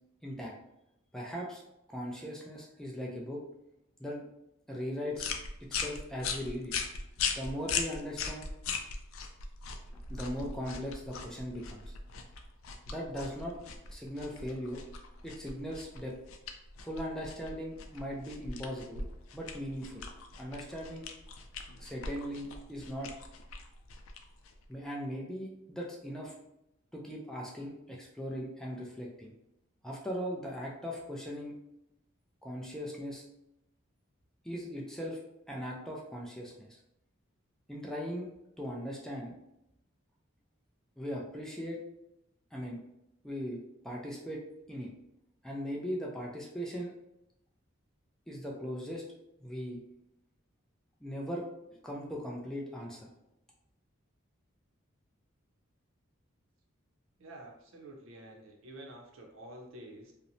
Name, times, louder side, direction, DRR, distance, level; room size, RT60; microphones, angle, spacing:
voice 1, 0.2-0.5 1.1-1.6 1.9-3.4 4.0-4.3 4.7-5.3 5.6-6.8 7.4-8.5 10.1-11.9 12.9-13.6 13.9-14.8 15.2-16.1 16.8-19.0 19.3-20.1 20.4-21.1 21.8-23.1 24.7-26.3 26.9-29.3 29.8-31.6 32.4-33.2 34.4-35.2 35.5-36.8 37.7-38.3 38.6-39.3 41.0-41.8 42.5-42.8 43.2-44.4 44.7-44.9 45.4-46.9 48.3-49.0 49.4-49.8 51.0-51.4 51.8-53.1, equal, 5° left, -3 dB, 0.3 m, -39 dB
sound 1, 5.1-24.7, left 5 dB, 80° left, 0.4 m, -40 dB
voice 2, 57.2-60.1, right 1 dB, 75° right, 1 dB, 0.6 m, -49 dB
2.9 x 2.0 x 2.6 m, 0.84 s
head